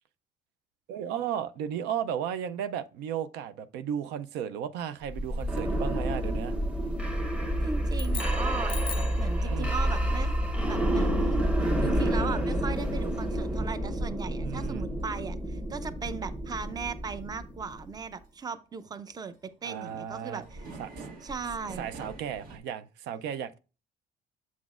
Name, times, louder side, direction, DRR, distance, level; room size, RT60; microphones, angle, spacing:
voice 1, 0.9-6.5 9.4-9.7 11.5-11.9 14.4-14.9 19.6-20.4 20.8-21.3 21.8-23.6, right 9 dB, 90° right, 0.5 m, -35 dB
sound 1, 5.1-17.9, equal, 5° right, 1.0 m, -29 dB
voice 2, 7.6-10.4 10.6-20.6 21.2-21.9, right 5 dB, 25° right, 0.6 m, -38 dB
sound 2, 7.9-9.3, left 6 dB, 30° left, 0.4 m, -40 dB
sound 3, 10.1-10.2 10.7-10.8 11.2-11.3 11.7-11.8 12.3-12.4 12.8-12.9 13.4-13.5 13.9-14.0 14.5-14.6 15.0-15.1 15.5-15.6 16.1-16.2 16.6-16.7 17.2-17.4 17.7-17.8 18.1-22.6, right 3 dB, 60° right, 1.5 m, -47 dB
7.1 x 6.0 x 2.4 m
cardioid pair, 110°, 17 cm